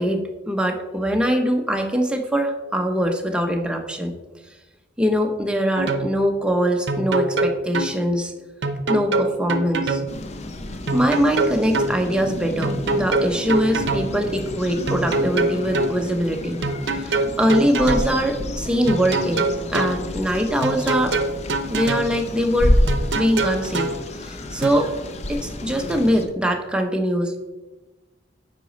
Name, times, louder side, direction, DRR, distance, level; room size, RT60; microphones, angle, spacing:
voice 1, 0.0-4.2 5.0-8.3 8.9-10.0 10.9-16.6 16.9-19.4 19.7-21.2 21.7-22.8 23.1-23.9 24.2-24.9 25.3-27.5, equal, 5° right, 3 dB, 0.7 m, -22 dB
sound 1, 5.8-6.1 6.9-7.9 8.6-10.1 10.9-11.9 12.6-14.1 14.9-15.9 16.6-18.1 18.9-20.0 20.6-22.1 22.9-24.0 24.6-24.7, right 2 dB, 70° right, 0.6 m, -23 dB
sound 2, 10.1-26.3, left 1 dB, 35° left, 0.6 m, -29 dB
8.1 x 5.0 x 4.0 m, 1.1 s
head